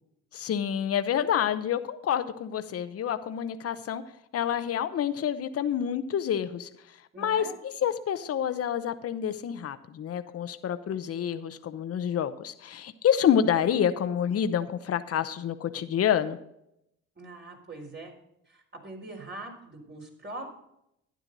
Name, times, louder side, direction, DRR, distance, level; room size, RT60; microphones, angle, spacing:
voice 1, 0.3-4.0 4.3-6.7 7.2-16.4, left 9 dB, 50° left, 10 dB, 0.8 m, -28 dB
voice 2, 7.1-7.6 17.2-18.1 18.5-20.5, right 2 dB, 35° right, 1 dB, 4.1 m, -42 dB
12.0 x 9.8 x 4.0 m, 0.79 s
cardioid pair, 90°, 30 cm